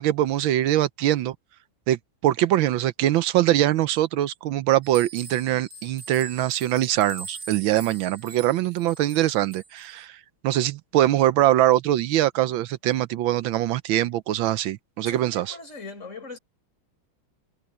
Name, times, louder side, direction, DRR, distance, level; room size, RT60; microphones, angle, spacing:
voice 1, 0.0-1.3 1.9-2.0 2.2-10.1 10.4-15.4, right 13 dB, 80° right, 1.5 m, -22 dB
sound 1, 4.8-9.9, right 4 dB, 45° right, 4.3 m, -42 dB
voice 2, 15.0-16.4, left 3 dB, 35° left, 5.2 m, -40 dB
omnidirectional pair, 2.2 m